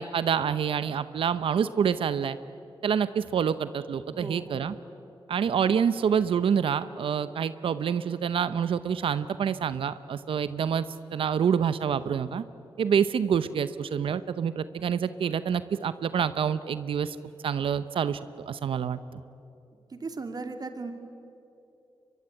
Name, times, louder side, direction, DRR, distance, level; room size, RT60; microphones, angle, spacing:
voice 1, 0.0-2.4 2.8-4.8 5.3-10.8 11.1-12.4 12.8-17.2 17.4-18.2 18.5-19.0, right 7 dB, 80° right, 14 dB, 0.7 m, -27 dB
voice 2, 4.1-4.8 19.9-20.9, right 3 dB, 45° right, 7 dB, 2.6 m, -37 dB
23.5 x 23.0 x 9.7 m, 2.7 s
cardioid pair, 75°, 9 cm